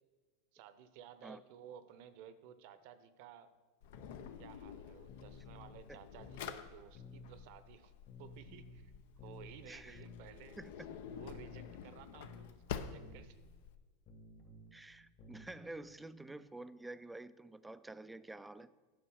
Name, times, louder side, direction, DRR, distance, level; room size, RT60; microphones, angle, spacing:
voice 1, 0.5-3.5 4.4-7.9 8.2-8.9 9.2-10.6 11.1-13.4, right 9 dB, 60° right, 12 dB, 0.8 m, -55 dB
Drawer open or close, 3.8-13.8, left 8 dB, 70° left, 0.7 m, -49 dB
sound 1, 3.9-4.3 5.1-5.8 6.2-6.5 6.9-7.3 8.1-8.8 9.2-9.5 10.0-10.3 11.1-11.8 12.2-12.5 13.0-13.2 14.1-14.8 15.2-15.5, left 4 dB, 50° left, 1.9 m, -54 dB
voice 2, 9.7-10.0 10.6-11.0 14.7-18.7, right 2 dB, 5° right, 14 dB, 0.4 m, -49 dB
10.0 x 5.3 x 6.3 m, 1.3 s
supercardioid pair, 120°, 0 cm